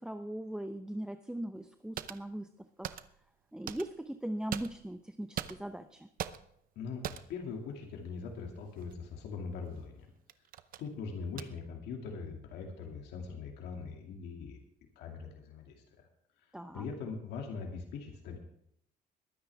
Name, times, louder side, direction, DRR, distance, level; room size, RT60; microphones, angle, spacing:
voice 1, 0.0-3.0 3.5-6.1 16.5-16.9, right 1 dB, 5° right, 8 dB, 0.6 m, -40 dB
sound 1, 2.0-2.3 2.8-3.3 3.7-4.1 4.5-5.0 5.4-5.8 6.2-6.6 7.0-7.4 8.8-9.0 9.7-9.9 10.3-10.9 11.4-11.5, right 10 dB, 55° right, 0.8 m, -41 dB
voice 2, 6.8-10.1 10.8-14.6 15.0-15.8 16.4-16.5 16.7-18.4, left 5 dB, 80° left, 1 dB, 2.4 m, -41 dB
22.0 x 9.5 x 3.5 m, 0.72 s
cardioid pair, 110°, 17 cm